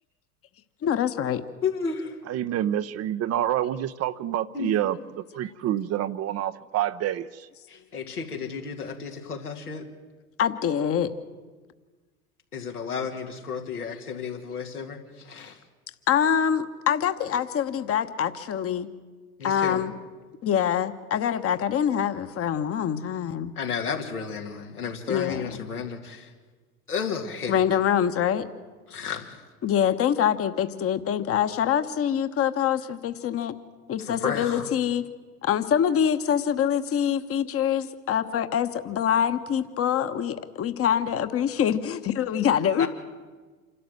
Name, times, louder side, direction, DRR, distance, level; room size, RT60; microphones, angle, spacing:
voice 1, 0.8-1.4 10.4-11.1 16.1-18.9 19.4-19.9 20.4-23.5 25.1-25.4 27.5-28.5 29.6-33.5 33.9-35.0 35.4-42.9, left 9 dB, 30° left, 10 dB, 1.2 m, -25 dB
voice 2, 1.6-2.2 4.5-4.8 7.7-9.9 12.5-15.6 19.4-19.8 23.5-26.3 26.9-27.6 28.9-29.4 34.0-34.7 42.8-42.9, left 6 dB, 90° left, 1 dB, 2.3 m, -32 dB
voice 3, 2.3-7.5, right 12 dB, 35° right, 13 dB, 0.7 m, -28 dB
27.5 x 12.5 x 7.8 m, 1.4 s
hypercardioid pair, 80°, 44 cm